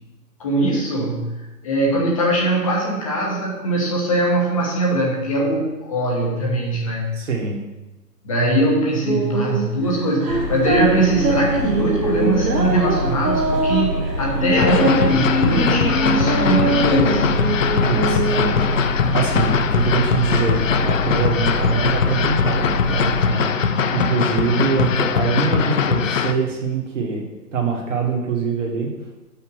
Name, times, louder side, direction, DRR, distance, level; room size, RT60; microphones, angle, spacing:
voice 1, 0.4-7.1 8.2-17.2, right 1 dB, 20° left, -2 dB, 1.0 m, -21 dB
voice 2, 7.1-7.6 17.9-18.9 19.1-27.3 27.5-28.9, right 5 dB, 50° right, 0 dB, 1.8 m, -24 dB
sound 1, 9.1-18.8, right 2 dB, 80° right, 1.5 m, -23 dB
sound 2, 10.3-23.2, equal, 80° left, 2.0 m, -26 dB
sound 3, 14.6-26.3, left 6 dB, 55° left, 0.5 m, -21 dB
5.8 x 5.1 x 6.2 m, 1.0 s
hypercardioid pair, 160°, 49 cm